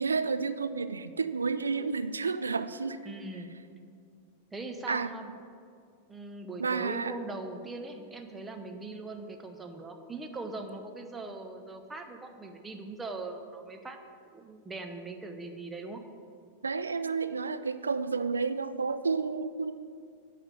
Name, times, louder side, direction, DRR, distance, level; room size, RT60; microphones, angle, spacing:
voice 1, 0.0-3.0 4.9-5.1 6.6-7.1 16.6-19.8, right 4 dB, 80° right, 11 dB, 0.3 m, -31 dB
voice 2, 3.0-3.5 4.5-5.3 6.1-14.0 14.3-16.0, right 3 dB, 10° right, 5 dB, 0.7 m, -40 dB
9.6 x 3.3 x 6.9 m, 2.3 s
figure-of-eight pair, 95°, 0 cm